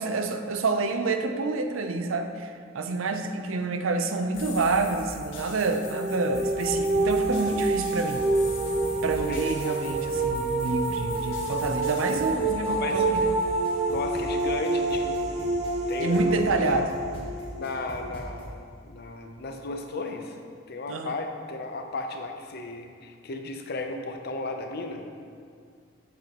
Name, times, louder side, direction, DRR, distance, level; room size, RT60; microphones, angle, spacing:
voice 1, 0.0-8.2 9.0-13.4 16.0-16.9 20.9-21.1, right 3 dB, 90° right, 7 dB, 0.6 m, -28 dB
sound 1, 4.3-12.3, left 3 dB, 75° left, 1.2 m, -42 dB
sound 2, 5.7-18.6, right 2 dB, 35° right, 0.7 m, -28 dB
sound 3, 6.4-18.5, equal, 30° left, 1.3 m, -41 dB
voice 2, 12.6-13.2 13.9-15.5 15.9-16.9 17.5-18.5 18.8-20.4 20.7-25.0, left 2 dB, 55° left, 5 dB, 0.6 m, -34 dB
8.5 x 7.4 x 3.0 m, 2.2 s
head